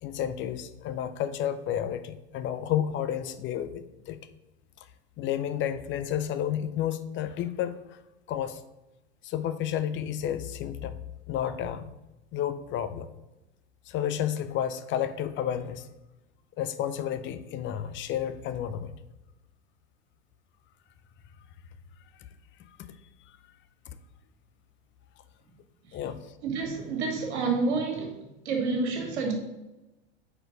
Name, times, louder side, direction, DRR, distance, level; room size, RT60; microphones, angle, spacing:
voice 1, 0.0-4.2 5.2-8.0 8.3-8.6 9.2-11.0 11.3-11.9 12.3-13.1 13.9-15.9 16.6-19.0 25.9-26.3, left 10 dB, 35° left, 11 dB, 0.6 m, -31 dB
voice 2, 26.4-28.2 28.5-29.3, right 4 dB, 75° right, 2 dB, 2.0 m, -28 dB
4.5 x 4.4 x 5.2 m, 0.98 s
hypercardioid pair, 95°, 33 cm